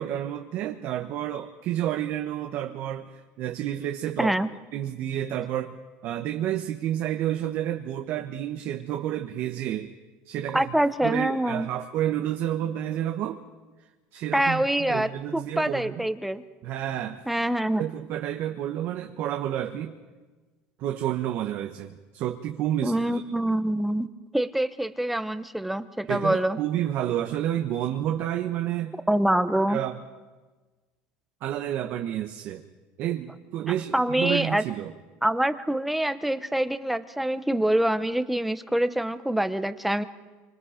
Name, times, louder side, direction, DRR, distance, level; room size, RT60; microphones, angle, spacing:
voice 1, 0.0-4.3 4.7-5.7 6.0-9.9 10.2-10.7 11.0-13.4 14.1-16.1 16.6-17.2 17.8-20.0 20.8-23.2 26.1-28.9 29.7-30.0 31.4-32.6 33.0-34.9, right 11 dB, 50° right, 5 dB, 1.2 m, -30 dB
voice 2, 10.5-11.7 14.3-16.4 17.3-17.9 22.8-24.1 24.3-26.6 29.1-29.8 33.9-34.6 35.2-40.0, right 1 dB, 5° right, 11 dB, 0.9 m, -25 dB
29.0 x 25.5 x 5.2 m, 1.3 s
cardioid pair, 140°, 5 cm